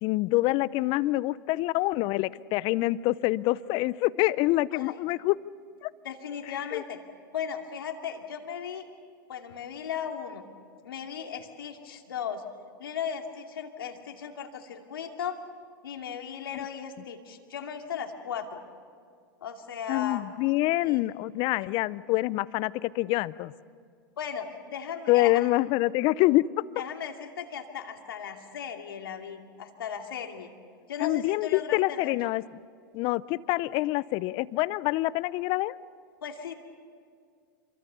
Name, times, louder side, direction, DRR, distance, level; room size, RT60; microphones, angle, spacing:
voice 1, 0.0-5.4 5.8-5.9 6.5-6.8 16.5-16.6 19.9-23.5 25.1-26.4 31.0-32.4 32.9-35.7, left 18 dB, 45° left, 19 dB, 0.6 m, -26 dB
voice 2, 6.0-7.0 7.3-8.9 9.3-10.4 10.8-12.4 12.8-15.4 15.8-18.6 19.4-20.2 20.8-21.0 24.2-25.5 26.8-30.5 30.9-32.3 36.2-36.5, left 8 dB, 80° left, 3 dB, 2.6 m, -36 dB
27.0 x 23.5 x 6.9 m, 2.1 s
hypercardioid pair, 105°, 12 cm